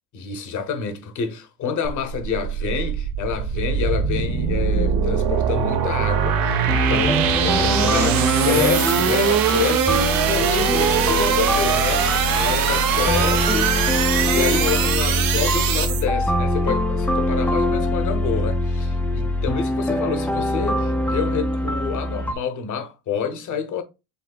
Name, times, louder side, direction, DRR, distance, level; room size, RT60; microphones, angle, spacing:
voice 1, 0.1-13.8 14.3-23.8, left 6 dB, 55° left, 1.0 m, -28 dB
sound 1, 1.8-16.0, right 8 dB, 65° right, 0.9 m, -22 dB
sound 2, 6.7-22.3, left 1 dB, 5° left, 0.5 m, -23 dB
5.4 x 3.4 x 2.3 m
cardioid pair, 125°, 37 cm